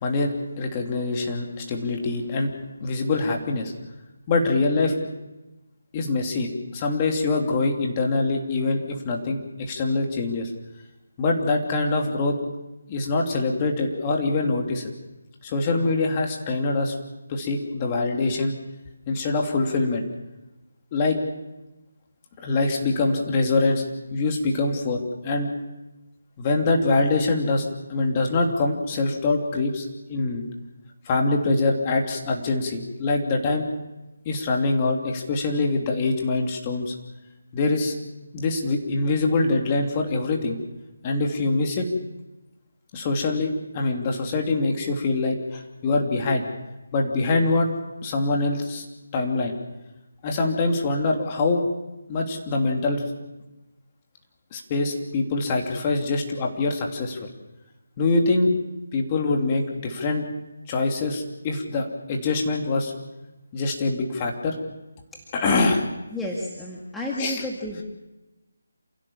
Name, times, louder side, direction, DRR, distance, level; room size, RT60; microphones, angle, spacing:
voice 1, 0.0-2.5 2.8-3.7 4.3-4.9 5.9-10.5 11.2-12.4 12.9-14.9 15.4-16.9 17.3-18.5 19.1-20.0 20.9-21.2 22.4-23.8 24.1-25.5 26.4-30.4 31.0-33.7 34.2-36.9 37.5-37.9 38.3-40.6 41.0-41.9 42.9-46.5 46.9-47.7 48.0-48.8 49.1-49.6 50.2-51.6 52.1-53.0 54.5-57.3 58.0-58.5 58.9-60.2 60.7-62.9 63.5-64.6 65.3-65.8 67.2-67.4, left 3 dB, 25° left, 2 dB, 3.1 m, -24 dB
voice 2, 66.1-67.8, left 1 dB, 5° left, -4 dB, 2.1 m, -31 dB
28.0 x 16.5 x 7.3 m, 1.0 s
figure-of-eight pair, 160°, 0 cm